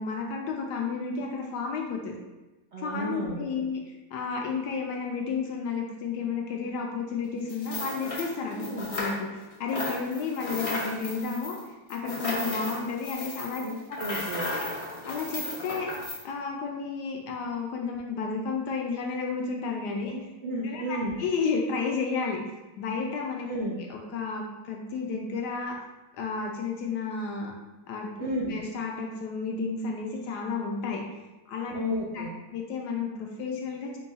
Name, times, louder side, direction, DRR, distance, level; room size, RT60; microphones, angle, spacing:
voice 1, 0.0-2.2 2.8-3.8 4.1-8.6 8.9-11.6 11.9-13.6 15.0-15.9 16.2-20.1 20.6-22.4 22.8-23.5 23.8-25.8 26.1-27.5 27.9-31.0 31.5-31.8 32.1-32.3 32.5-34.0, left 5 dB, 70° left, 0 dB, 1.1 m, -32 dB
voice 2, 2.7-3.5 8.6-8.9 13.6-13.7 14.0-14.5 20.4-21.2 23.5-23.8 28.2-28.6 31.7-32.3, equal, 85° right, -5 dB, 0.6 m, -32 dB
sound 1, 7.5-9.4 9.7-16.2, left 2 dB, 55° left, 0.3 m, -35 dB
4.5 x 2.3 x 4.0 m, 1.1 s
omnidirectional pair, 2.0 m